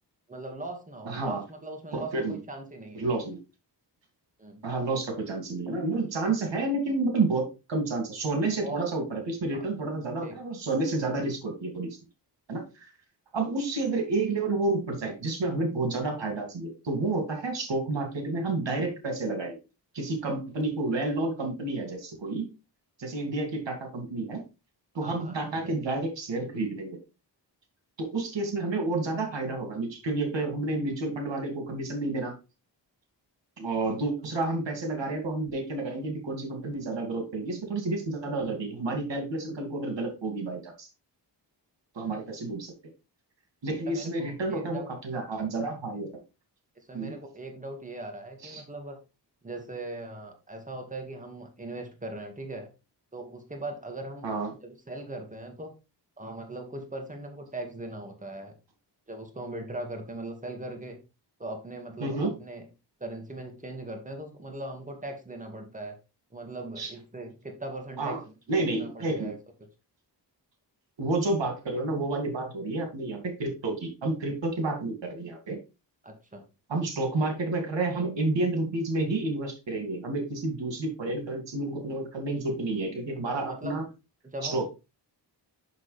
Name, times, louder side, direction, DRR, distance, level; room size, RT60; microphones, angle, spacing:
voice 1, 0.3-3.0 4.4-4.7 8.6-8.8 9.5-9.7 10.2-10.4 25.0-25.8 43.9-44.9 46.8-49.0 49.4-52.7 53.1-54.3 54.6-55.7 56.2-58.5 59.1-61.0 61.4-62.7 63.0-66.0 66.3-68.2 68.5-69.4 76.0-76.4 83.4-83.9 84.2-84.6, right 2 dB, 20° right, 4 dB, 2.0 m, -39 dB
voice 2, 1.0-1.4 1.9-2.4 2.9-3.4 4.6-12.0 12.5-12.9 13.3-19.6 19.9-22.4 23.0-24.4 24.9-27.0 28.0-32.3 33.6-40.9 41.9-42.7 43.6-46.1 46.9-47.1 48.4-48.6 54.2-54.5 62.0-62.3 66.8-66.9 68.0-68.2 68.5-69.3 71.0-75.6 76.7-83.8 84.4-84.6, right 2 dB, 85° right, 3 dB, 2.5 m, -30 dB
6.7 x 6.2 x 3.4 m, 0.28 s
cardioid pair, 70°, 43 cm